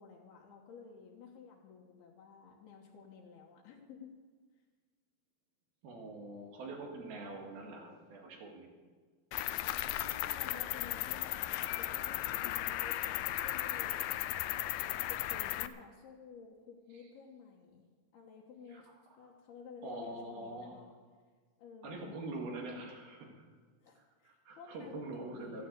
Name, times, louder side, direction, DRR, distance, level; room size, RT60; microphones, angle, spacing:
voice 1, 0.0-4.1 9.9-14.1 14.8-17.8 18.1-18.9 19.2-20.9 21.6-22.1 23.8-25.7, left 5 dB, 70° left, -1 dB, 3.1 m, -53 dB
voice 2, 5.8-8.7 14.7-14.9 16.9-17.0 18.7-18.8 19.8-20.8 21.8-23.5 24.0-25.7, right 2 dB, 65° right, 0 dB, 3.5 m, -44 dB
Cricket, 9.3-15.7, left 15 dB, 90° left, 2.1 m, -36 dB
13.5 x 9.7 x 8.1 m, 1.5 s
omnidirectional pair, 4.8 m